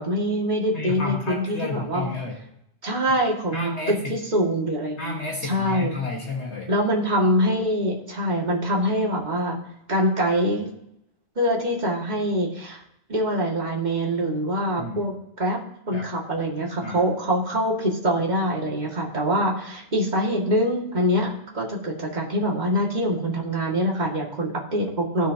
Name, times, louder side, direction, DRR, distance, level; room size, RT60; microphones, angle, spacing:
voice 1, 0.0-2.1 2.8-5.1 5.4-5.9 6.7-9.6 9.9-10.7 11.4-12.8 13.1-15.6 15.9-25.3, equal, 35° right, -2 dB, 2.1 m, -24 dB
voice 2, 0.7-2.4 3.5-4.2 5.0-6.7 14.8-15.1 15.9-16.1 16.8-17.0, left 3 dB, 60° left, 0 dB, 1.6 m, -31 dB
18.0 x 6.3 x 2.8 m, 0.79 s
omnidirectional pair, 1.3 m